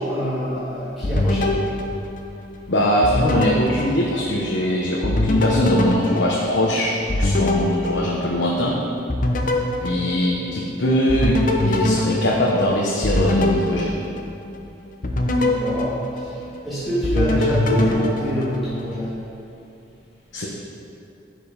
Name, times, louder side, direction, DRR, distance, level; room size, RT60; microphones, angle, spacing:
voice 1, 0.0-1.6 15.4-16.3 16.6-19.2, right 1 dB, ahead, -13 dB, 1.8 m, -26 dB
sound 1, 1.0-2.6 3.0-4.6 5.0-8.7 9.1-10.7 11.1-14.6 15.0-16.6 17.0-19.0, left 1 dB, 45° left, 0.8 m, -23 dB
voice 2, 2.7-8.8 9.8-11.4 11.6-13.9 20.3-20.5, equal, 70° left, -3 dB, 1.0 m, -21 dB
11.5 x 5.1 x 5.2 m, 2.7 s
head